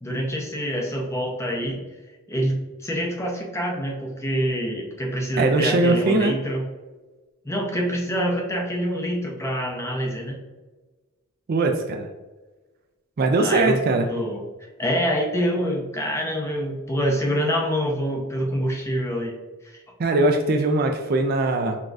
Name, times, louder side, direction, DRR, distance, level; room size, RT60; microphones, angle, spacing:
voice 1, 0.0-1.8 2.3-6.6 7.4-10.4 13.4-13.8 14.1-14.4 14.8-19.3 19.6-19.8, equal, 10° left, 0 dB, 0.5 m, -26 dB
voice 2, 5.4-6.4 11.5-12.1 13.2-14.1 20.0-21.8, right 2 dB, 45° right, 4 dB, 0.3 m, -21 dB
5.8 x 2.4 x 2.5 m, 1.2 s
head